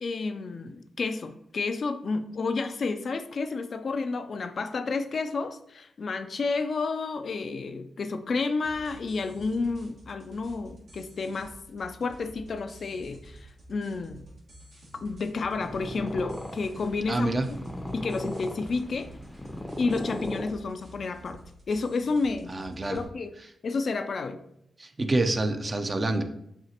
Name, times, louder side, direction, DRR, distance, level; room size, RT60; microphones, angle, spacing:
voice 1, 0.0-14.3 15.0-17.3 17.9-19.1 19.8-21.4 21.7-22.5 22.9-23.3 23.6-24.4, left 4 dB, 60° left, 9 dB, 0.3 m, -30 dB
sound 1, 8.6-23.1, right 1 dB, 75° right, 1.4 m, -50 dB
Purr, 15.3-21.0, left 1 dB, 10° left, 0.6 m, -37 dB
voice 2, 17.1-17.5 22.5-23.0 24.8-26.2, right 2 dB, 40° right, 6 dB, 0.6 m, -27 dB
5.8 x 2.5 x 2.8 m, 0.75 s
supercardioid pair, 45°, 0 cm